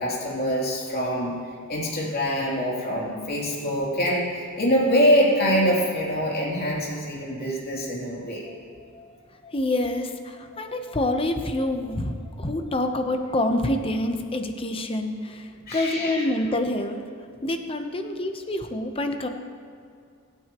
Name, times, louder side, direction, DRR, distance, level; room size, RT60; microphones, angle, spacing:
voice 1, 0.0-1.3 1.7-8.5 15.7-16.3, equal, 45° left, -4 dB, 3.1 m, -24 dB
voice 2, 9.4-17.0 17.4-19.3, left 1 dB, 25° left, 6 dB, 0.9 m, -27 dB
24.5 x 9.0 x 3.0 m, 2.3 s
head